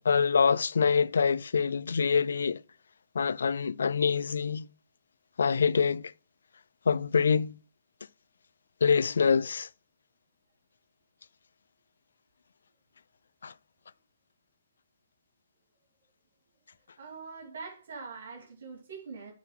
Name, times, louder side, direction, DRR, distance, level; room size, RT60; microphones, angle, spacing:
voice 1, 0.1-2.6 3.2-4.7 5.4-6.0 6.9-7.5 8.8-9.7 13.4-13.5, left 6 dB, 75° left, 0.3 m, -25 dB
voice 2, 17.0-19.3, right 4 dB, 70° right, 2.4 m, -43 dB
9.5 x 3.9 x 5.6 m
hypercardioid pair, 130°, 0 cm